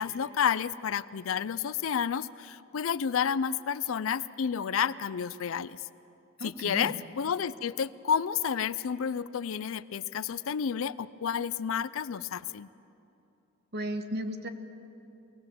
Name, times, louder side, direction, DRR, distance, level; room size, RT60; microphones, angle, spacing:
voice 1, 0.0-5.8 6.4-12.7, left 7 dB, 70° left, 16 dB, 0.4 m, -30 dB
voice 2, 6.4-6.9 13.7-14.5, equal, 50° right, 7 dB, 1.3 m, -35 dB
22.5 x 18.5 x 7.5 m, 2.8 s
head